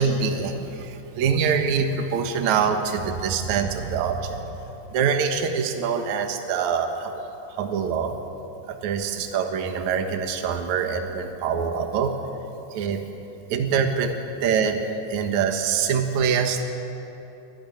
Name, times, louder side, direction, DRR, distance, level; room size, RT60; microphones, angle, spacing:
voice 1, 0.0-4.5 4.9-7.2 7.6-8.2 8.7-12.2 12.7-13.0 13.5-14.1 14.4-16.6, right 6 dB, 60° right, 5 dB, 2.5 m, -24 dB
24.0 x 15.0 x 9.3 m, 2.9 s
omnidirectional pair, 4.1 m